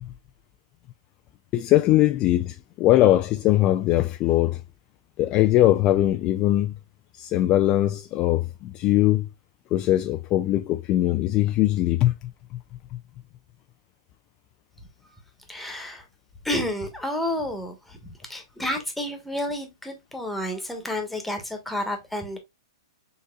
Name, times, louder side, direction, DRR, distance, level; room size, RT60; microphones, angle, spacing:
voice 1, 1.5-4.6 5.2-6.7 7.2-9.3 9.7-12.1, left 14 dB, 30° left, 0.3 m, -21 dB
voice 2, 15.5-16.1 16.4-18.0 18.2-22.4, left 1 dB, ahead, 1.2 m, -30 dB
6.5 x 2.9 x 2.3 m
hypercardioid pair, 140°, 3 cm